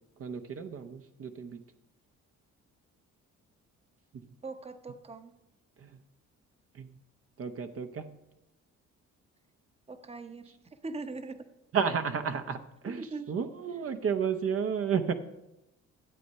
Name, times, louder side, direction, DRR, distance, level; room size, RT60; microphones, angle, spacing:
voice 1, 0.2-1.6 4.1-4.3 5.8-5.9 6.7-6.9 7.4-8.2 11.7-15.1, right 7 dB, 50° right, 6 dB, 0.8 m, -32 dB
voice 2, 4.4-5.3 9.9-10.5 10.8-11.4 12.8-13.3, right 3 dB, 20° right, 9 dB, 0.9 m, -41 dB
12.5 x 7.8 x 5.5 m, 0.92 s
cardioid pair, 90°, 30 cm